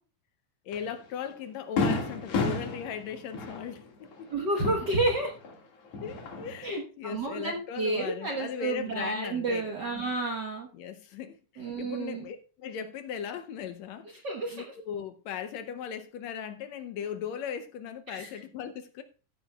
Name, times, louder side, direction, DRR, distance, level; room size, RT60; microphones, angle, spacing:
voice 1, 0.7-4.5 6.0-10.1 10.7-14.1 14.5-19.0, left 7 dB, 75° left, 1.7 m, -38 dB
Fireworks, 0.7-0.9 1.3-1.4 1.8-5.5 5.8-6.7, left 3 dB, 55° left, 2.9 m, -32 dB
voice 2, 4.3-5.3 6.6-10.7 11.6-12.3 14.2-14.6 18.1-18.3, right 2 dB, 50° right, 1.3 m, -30 dB
15.0 x 8.6 x 2.3 m
omnidirectional pair, 3.5 m